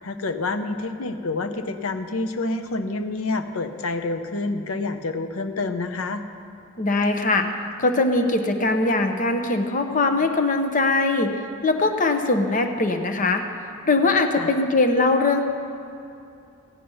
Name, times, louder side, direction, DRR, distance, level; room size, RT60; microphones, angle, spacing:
voice 1, 0.0-6.2 14.4-14.5, left 3 dB, 85° left, 8 dB, 0.7 m, -28 dB
voice 2, 6.8-7.5 7.8-13.4 13.8-15.4, left 3 dB, 40° left, 6 dB, 0.8 m, -21 dB
15.5 x 9.5 x 5.5 m, 2.6 s
head